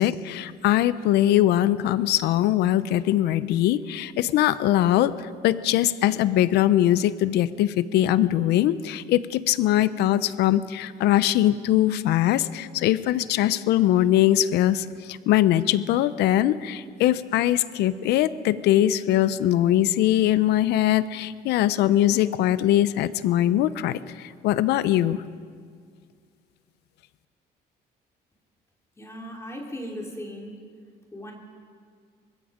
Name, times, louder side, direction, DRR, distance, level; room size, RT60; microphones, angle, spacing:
voice 1, 0.0-25.2, left 13 dB, 80° left, 15 dB, 0.7 m, -22 dB
voice 2, 29.0-30.6 31.1-31.3, equal, 15° left, -1 dB, 3.4 m, -37 dB
24.5 x 21.0 x 5.1 m, 2.1 s
cardioid pair, 110°, 17 cm